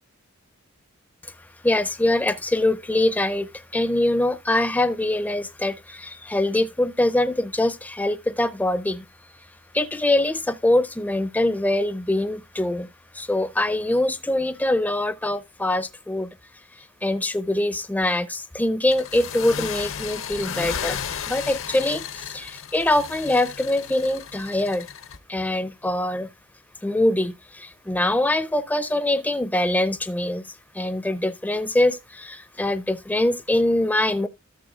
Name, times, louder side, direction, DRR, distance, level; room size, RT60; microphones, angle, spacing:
voice 1, 1.6-9.0 9.7-12.9 13.1-16.3 16.8-21.0 21.3-24.9 25.3-26.3 26.8-30.4 30.7-34.3, left 1 dB, 5° left, 0.4 m, -23 dB
sound 1, 18.9-25.2, left 7 dB, 60° left, 0.7 m, -34 dB
14.0 x 6.8 x 2.3 m
head